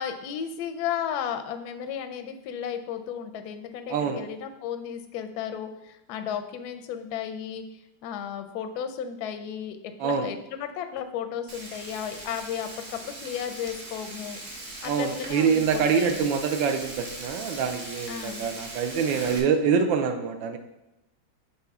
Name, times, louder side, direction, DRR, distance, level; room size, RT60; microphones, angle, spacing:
voice 1, 0.0-16.2 18.1-18.4, left 8 dB, 75° left, 7 dB, 0.9 m, -34 dB
voice 2, 3.9-4.2 10.0-10.3 14.8-20.6, right 6 dB, 75° right, 7 dB, 1.2 m, -25 dB
Frying (food), 11.5-19.4, right 2 dB, 40° right, 0.9 m, -40 dB
6.9 x 4.2 x 3.5 m, 0.95 s
omnidirectional pair, 2.2 m